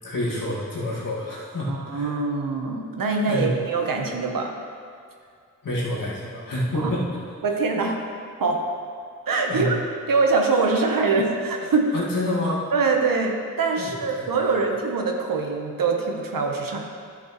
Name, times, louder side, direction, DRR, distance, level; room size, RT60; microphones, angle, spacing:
voice 1, 0.0-2.3 3.3-3.5 5.6-7.0 9.5-9.7 11.9-12.7 13.8-14.5, left 1 dB, 85° left, -7 dB, 2.1 m, -28 dB
voice 2, 1.7-4.5 6.8-6.9 7.4-8.0 8.4-8.6 9.3-9.8 10.1-11.9 12.7-16.9, right 4 dB, 85° right, 2 dB, 1.0 m, -23 dB
11.5 x 7.1 x 3.1 m, 2.2 s
wide cardioid pair, 65°, 33 cm